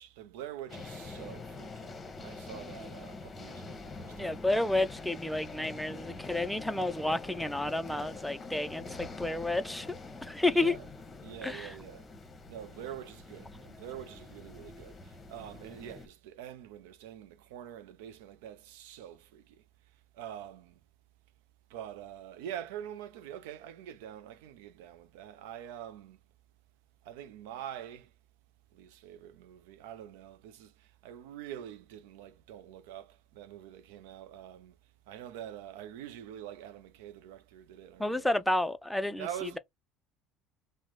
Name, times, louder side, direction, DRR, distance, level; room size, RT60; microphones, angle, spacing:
voice 1, 0.0-2.0 2.2-4.4 10.4-10.9 11.2-12.1 12.5-19.6 20.1-20.8 21.7-26.2 27.0-28.1 28.7-34.8 35.1-38.3 39.2-39.6, right 10 dB, 80° right, 0.4 m, -45 dB
sound 1, 0.7-16.1, left 3 dB, 25° left, 0.9 m, -45 dB
voice 2, 4.2-10.0 10.2-10.8 11.4-11.7 38.0-39.6, left 2 dB, 5° left, 0.5 m, -31 dB
3.0 x 2.1 x 3.7 m
hypercardioid pair, 75°, 0 cm